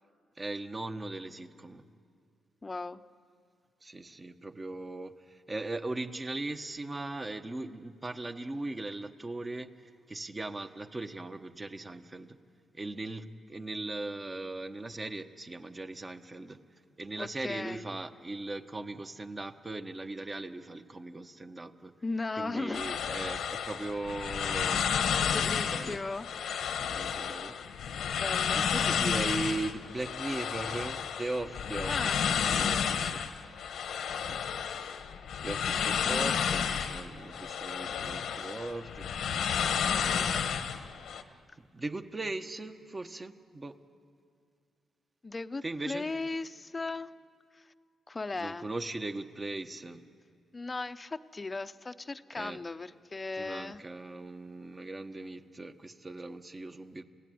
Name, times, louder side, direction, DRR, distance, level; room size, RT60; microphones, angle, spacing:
voice 1, 0.4-1.8 3.8-12.4 12.7-16.6 17.0-21.9 22.4-26.0 26.8-27.6 28.5-33.2 34.3-34.5 35.4-39.1 41.6-43.7 45.6-46.0 48.4-50.0 52.4-52.6 53.3-57.0, right 2 dB, 25° right, 8 dB, 1.3 m, -39 dB
voice 2, 2.6-3.0 17.2-17.8 22.0-22.8 25.2-26.3 28.1-28.6 31.9-32.2 45.2-47.1 47.5-47.7 48.1-48.7 50.5-53.8, left 3 dB, 30° left, 12 dB, 0.8 m, -37 dB
sound 1, 22.7-41.2, left 7 dB, 80° left, 1.3 m, -31 dB
29.0 x 16.5 x 9.4 m, 2.3 s
cardioid pair, 75°, 0 cm